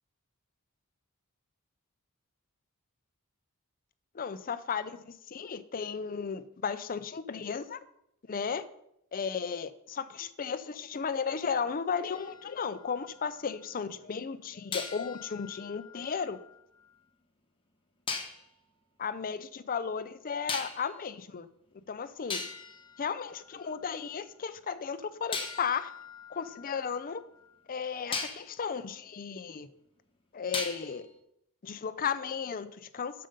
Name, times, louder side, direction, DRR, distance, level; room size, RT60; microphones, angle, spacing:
voice 1, 4.1-7.8 8.3-8.7 9.1-16.4 19.0-21.5 21.9-22.4 23.0-25.9 26.3-27.2 27.7-29.7 30.3-31.0 31.6-33.3, left 6 dB, 40° left, 12 dB, 0.5 m, -35 dB
sound 1, 12.1-13.5 14.7-16.8 18.1-18.5 20.5-21.0 21.8-21.9 22.3-23.9 25.3-27.5 28.1-28.5 30.5-31.1, left 4 dB, 25° left, 1.0 m, -40 dB
7.6 x 6.7 x 5.2 m, 0.77 s
head